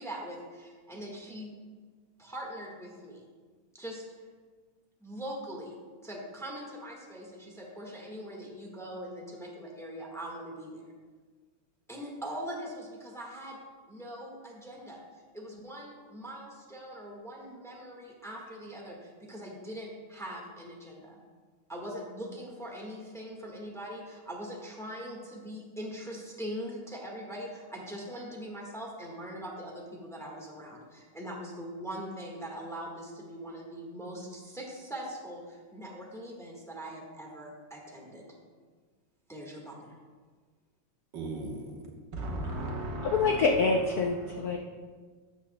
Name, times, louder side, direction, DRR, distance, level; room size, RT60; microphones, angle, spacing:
voice 1, 0.0-1.5 2.2-3.2 3.7-4.0 5.0-5.8 6.0-10.9 11.9-13.6 13.9-21.2 21.7-38.3 39.3-40.0, equal, ahead, -2 dB, 1.0 m, -42 dB
voice 2, 41.1-41.8 42.1-43.5 44.0-44.4, right 1 dB, 60° right, 0 dB, 1.7 m, -36 dB
voice 3, 43.0-44.6, left 4 dB, 85° left, 3 dB, 0.8 m, -26 dB
13.0 x 8.4 x 2.2 m, 1.5 s
omnidirectional pair, 2.4 m